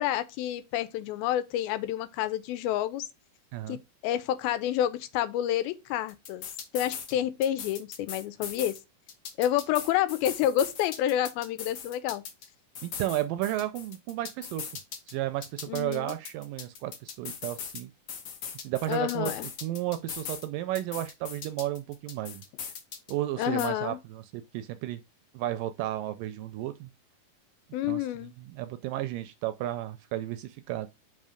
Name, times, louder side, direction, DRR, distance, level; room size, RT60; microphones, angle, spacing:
voice 1, 0.0-3.1 3.7-3.8 4.0-6.5 6.7-8.8 9.4-12.2 15.7-16.2 18.9-19.5 23.4-24.0 27.7-28.3, left 12 dB, 90° left, 2.5 m, -29 dB
sound 1, 6.1-7.1 7.4-8.8 9.1-12.5 12.8-15.1 15.4-17.8 18.1-20.5 20.8-23.1 23.4-23.7, left 7 dB, 70° left, 1.4 m, -40 dB
voice 2, 12.8-14.7 15.1-17.9 18.5-19.3 19.6-22.4 23.1-25.0 25.3-26.9 27.8-28.1 28.4-30.9, right 14 dB, 80° right, 2.0 m, -33 dB
5.5 x 3.7 x 4.9 m
omnidirectional pair, 4.2 m